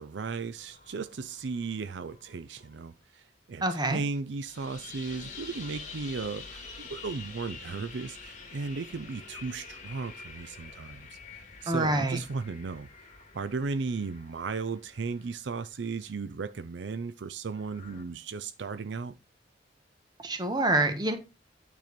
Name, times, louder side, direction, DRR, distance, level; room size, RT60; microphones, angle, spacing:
voice 1, 0.0-19.1, right 4 dB, 75° right, 0.5 m, -36 dB
sound 1, 0.6-2.8 4.4-16.0 17.5-18.0, left 4 dB, 45° left, 2.0 m, -47 dB
voice 2, 3.6-4.0 11.7-12.2 20.2-21.2, right 2 dB, 25° right, 1.5 m, -26 dB
9.2 x 4.4 x 5.2 m
head